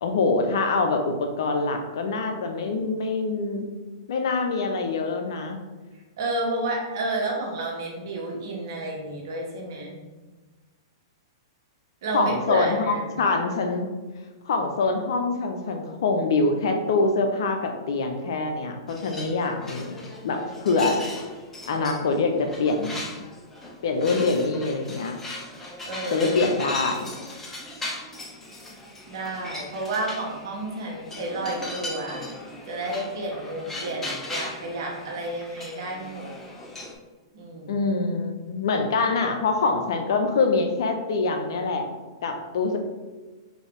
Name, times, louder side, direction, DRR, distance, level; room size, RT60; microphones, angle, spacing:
voice 1, 0.0-3.7 4.1-5.6 12.1-13.9 14.5-20.0 20.2-21.0 21.7-23.0 23.8-25.2 26.1-27.1 37.7-41.9 42.2-42.8, left 3 dB, 70° left, 5 dB, 0.6 m, -24 dB
voice 2, 6.2-10.0 12.0-13.2 25.8-26.3 29.1-32.3 32.7-36.3 37.3-37.8, right 2 dB, 60° right, -2 dB, 1.2 m, -31 dB
sound 1, 18.9-36.9, left 2 dB, 10° left, 0.7 m, -38 dB
3.9 x 2.8 x 3.6 m, 1.3 s
hypercardioid pair, 120°, 2 cm